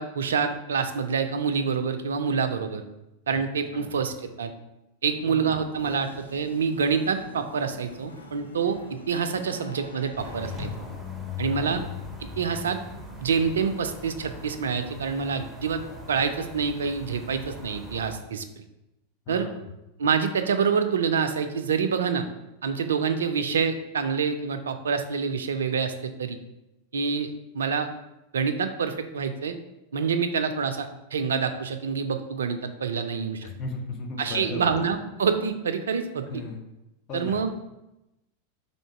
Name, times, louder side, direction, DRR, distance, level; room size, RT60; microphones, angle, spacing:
voice 1, 0.0-2.8 3.3-4.5 5.0-10.7 11.4-11.8 12.4-12.8 13.2-15.8 16.1-18.4 19.3-19.5 20.0-22.3 22.6-26.4 26.9-27.9 28.3-29.5 29.9-33.5 34.2-36.3 37.1-37.5, right 6 dB, 65° right, 8 dB, 0.3 m, -27 dB
sound 1, 5.0-10.7, left 2 dB, 75° left, 0.5 m, -45 dB
voice 2, 5.3-5.6 11.5-11.9 19.3-19.7 33.4-34.8 36.3-36.6 37.1-37.4, left 3 dB, 35° left, 3 dB, 0.6 m, -36 dB
sound 2, 10.2-18.2, left 4 dB, ahead, 0.7 m, -39 dB
3.6 x 2.7 x 4.4 m, 0.94 s
figure-of-eight pair, 90°, 0 cm